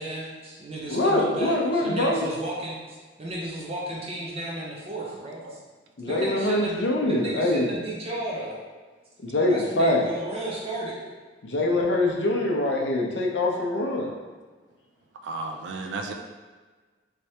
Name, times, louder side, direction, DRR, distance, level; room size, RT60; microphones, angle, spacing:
voice 1, 0.0-5.6 6.1-6.8 7.1-8.6 9.5-11.0, right 1 dB, 35° right, -4 dB, 0.8 m, -33 dB
voice 2, 0.9-2.3 6.0-7.7 9.2-10.0 11.4-14.1, left 2 dB, 75° left, 0 dB, 0.6 m, -24 dB
voice 3, 15.2-16.1, right 3 dB, 85° right, 4 dB, 0.4 m, -33 dB
3.2 x 3.2 x 2.8 m, 1.4 s
head